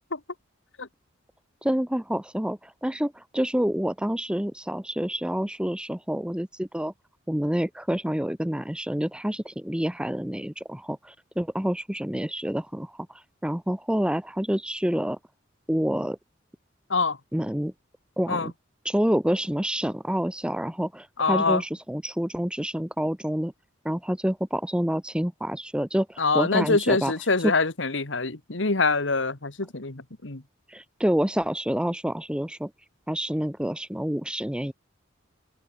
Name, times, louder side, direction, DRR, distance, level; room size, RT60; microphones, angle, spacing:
voice 1, 1.6-6.9 7.3-15.2 15.7-16.2 17.3-17.7 18.2-18.5 18.8-23.5 23.8-27.1 27.4-27.5 30.7-32.7 33.1-34.7, equal, 5° right, 0.9 m, -28 dB
voice 2, 21.2-21.6 26.2-30.4, left 3 dB, 70° left, 1.9 m, -24 dB
head